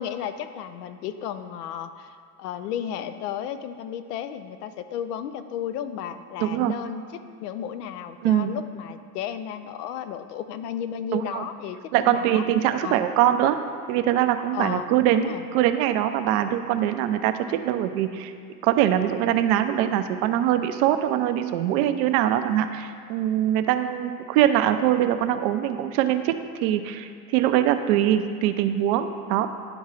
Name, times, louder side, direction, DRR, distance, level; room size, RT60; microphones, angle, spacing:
voice 1, 0.0-7.0 7.4-12.4 12.8-13.0 14.5-15.5, left 9 dB, 80° left, 11 dB, 0.5 m, -33 dB
voice 2, 6.4-6.7 8.2-8.5 11.1-11.4 11.9-13.6 13.9-18.3 18.6-26.3 26.6-29.5, right 11 dB, 65° right, 9 dB, 0.6 m, -23 dB
10.5 x 3.6 x 3.2 m, 2.3 s
hypercardioid pair, 75°, 46 cm